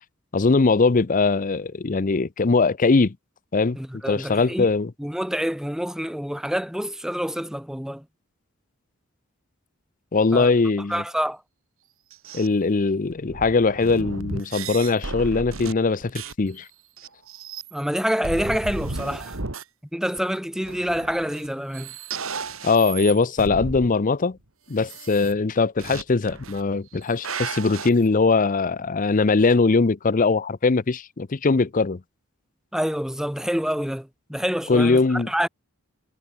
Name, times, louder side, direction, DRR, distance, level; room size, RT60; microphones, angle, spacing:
voice 1, 0.3-3.2 3.5-3.8 4.1-4.9 10.1-11.0 12.3-16.7 22.6-24.4 24.7-32.0 34.7-35.3, left 4 dB, 40° left, 0.6 m, -21 dB
voice 2, 3.8-4.7 5.0-8.0 10.3-10.5 10.9-11.4 17.7-19.4 19.9-21.9 32.7-35.5, equal, 5° right, 1.1 m, -27 dB
sound 1, 12.1-12.5 13.1-16.5 17.0-18.0 18.2-19.6 20.2-20.3 20.6-21.5 21.7-23.9 24.8-25.3 25.8-26.0 26.3-26.6 26.9-27.9, right 4 dB, 75° right, 2.4 m, -34 dB
head